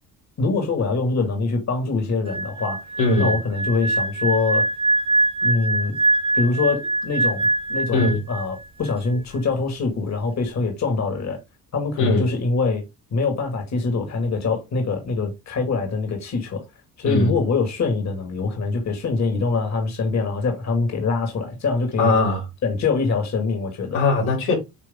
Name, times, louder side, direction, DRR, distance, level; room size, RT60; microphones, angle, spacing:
voice 1, 0.4-2.8 3.2-4.7 5.4-6.0 6.3-11.4 11.7-12.8 13.1-16.6 17.0-22.1 22.6-24.0, left 4 dB, 45° left, 2.4 m, -24 dB
sound 1, 2.3-8.6 8.9-9.2, right 2 dB, 15° right, 0.5 m, -23 dB
voice 2, 3.0-3.3 7.9-8.2 12.0-12.3 17.0-17.4 22.0-22.4 23.9-24.5, left 2 dB, 85° left, 3.9 m, -20 dB
8.3 x 3.1 x 3.8 m
cardioid pair, 90°, 38 cm